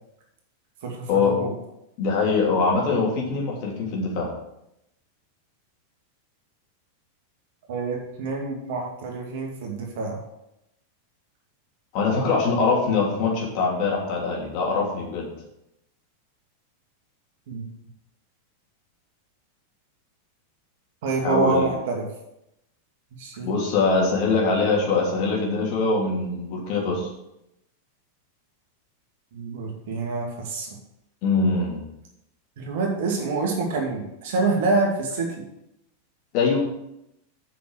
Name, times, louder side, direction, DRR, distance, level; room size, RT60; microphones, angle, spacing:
voice 1, 0.8-1.5 7.7-10.2 17.5-17.6 21.0-22.1 23.2-23.5 29.3-30.7 32.6-35.5, right 3 dB, 50° right, 1 dB, 2.3 m, -26 dB
voice 2, 2.0-4.3 11.9-15.3 21.2-21.7 23.4-27.1 31.2-31.8 36.3-36.6, left 4 dB, 45° left, -2 dB, 3.0 m, -23 dB
8.4 x 6.1 x 6.4 m, 0.83 s
figure-of-eight pair, 90°, 0 cm